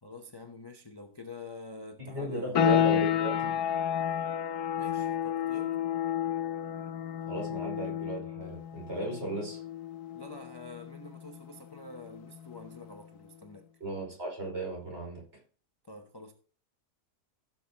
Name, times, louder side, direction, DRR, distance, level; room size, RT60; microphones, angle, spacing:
voice 1, 0.0-2.5 4.8-5.9 10.1-13.7 15.8-16.3, left 3 dB, 25° left, 0.6 m, -47 dB
voice 2, 2.0-3.5 7.3-9.6 13.8-15.2, right 1 dB, 40° right, 5.4 m, -35 dB
sound 1, 2.5-13.1, left 10 dB, 75° left, 1.4 m, -31 dB
16.5 x 7.4 x 2.9 m
omnidirectional pair, 1.7 m